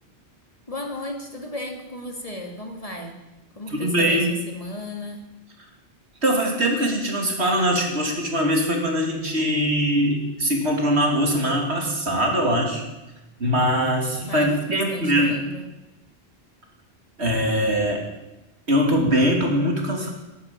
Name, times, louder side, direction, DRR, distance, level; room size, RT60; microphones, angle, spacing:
voice 1, 0.7-3.2 3.6-5.3 14.3-15.7, left 1 dB, 30° left, 2 dB, 2.1 m, -34 dB
voice 2, 3.7-4.3 6.2-12.8 13.4-15.3 17.2-18.0 18.7-20.1, equal, 70° right, 1 dB, 3.0 m, -22 dB
11.5 x 11.5 x 9.3 m, 1.0 s
omnidirectional pair, 1.1 m